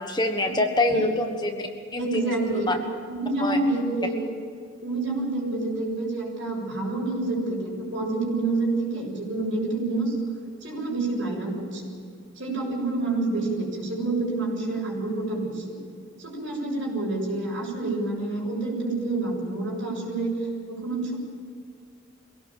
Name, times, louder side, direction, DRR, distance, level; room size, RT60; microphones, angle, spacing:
voice 1, 0.0-2.8 3.4-3.6, left 2 dB, 20° left, 5 dB, 1.4 m, -26 dB
voice 2, 2.0-4.2 4.8-10.2 10.6-11.9 12.4-15.8 16.2-20.3 20.7-21.1, right 2 dB, 65° right, -1 dB, 7.2 m, -28 dB
24.0 x 17.5 x 7.5 m, 2.3 s
head